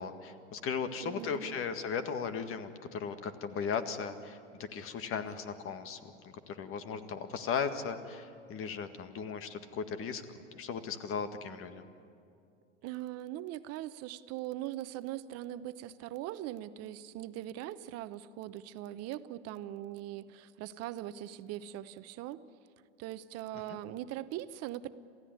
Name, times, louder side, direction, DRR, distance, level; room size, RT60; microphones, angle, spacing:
voice 1, 0.0-10.2 10.6-11.9, left 6 dB, 35° left, 9 dB, 1.8 m, -37 dB
voice 2, 1.0-1.6 12.8-22.4 23.0-24.9, right 13 dB, 45° right, 14 dB, 0.9 m, -41 dB
27.5 x 15.5 x 9.6 m, 2.4 s
hypercardioid pair, 90°, 35 cm